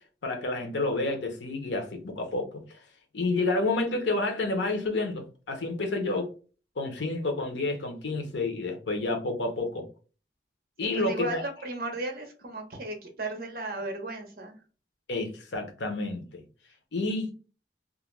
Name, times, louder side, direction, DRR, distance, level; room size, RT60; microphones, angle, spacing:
voice 1, 0.2-2.8 3.1-6.3 6.8-9.9 10.8-11.4 15.1-16.4 16.9-17.3, left 2 dB, 90° left, 0.7 m, -29 dB
voice 2, 10.9-14.5, right 2 dB, 55° right, 0.7 m, -35 dB
2.4 x 2.1 x 3.1 m
head